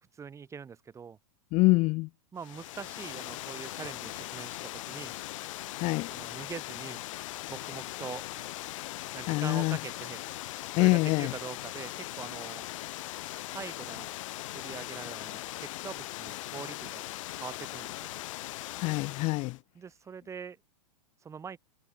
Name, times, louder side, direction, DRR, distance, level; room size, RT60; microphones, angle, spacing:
voice 1, 0.1-1.2 2.3-5.1 6.1-7.0 7.5-10.2 10.8-12.7 13.5-14.1 14.5-17.0 17.4-18.1 19.7-20.6 21.2-21.6, right 6 dB, 15° right, 6.3 m, -43 dB
voice 2, 1.5-2.1 5.8-6.1 9.3-9.8 10.8-11.3 18.8-19.6, left 23 dB, 35° left, 0.7 m, -25 dB
Water, 2.4-19.6, left 17 dB, 55° left, 6.3 m, -40 dB
hypercardioid pair, 135°, 19 cm